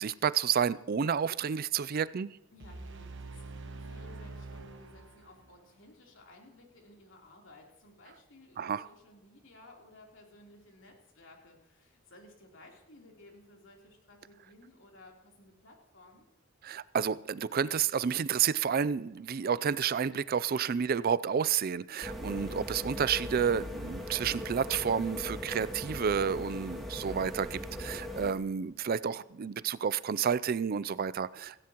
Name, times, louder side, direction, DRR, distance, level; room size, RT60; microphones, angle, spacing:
voice 1, 0.0-2.4 8.6-8.8 16.6-31.6, right 7 dB, 50° right, 0.4 m, -30 dB
voice 2, 2.5-16.3, left 2 dB, 65° left, 3.5 m, -56 dB
sound 1, 2.6-5.6, right 3 dB, 65° right, 1.3 m, -45 dB
sound 2, 22.0-28.3, left 1 dB, ahead, 2.2 m, -39 dB
17.0 x 16.5 x 3.0 m
head